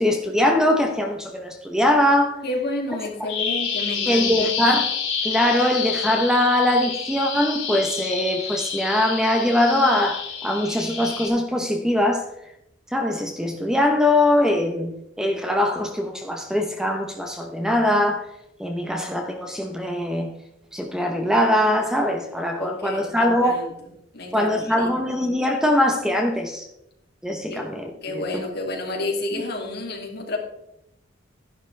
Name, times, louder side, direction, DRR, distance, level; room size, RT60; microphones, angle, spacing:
voice 1, 0.0-2.4 3.2-3.3 4.1-4.9 5.2-12.3 12.9-18.2 18.6-20.3 20.7-23.6 24.3-26.6 27.2-28.4, left 1 dB, 5° right, 3 dB, 0.9 m, -22 dB
voice 2, 2.4-4.6 22.6-23.7 24.1-25.0 27.5-27.6 28.0-30.4, left 2 dB, 55° left, 0 dB, 2.7 m, -30 dB
Bird vocalization bird call bird song, 3.3-11.3, left 6 dB, 80° left, 2.8 m, -28 dB
12.0 x 11.0 x 3.4 m, 0.82 s
head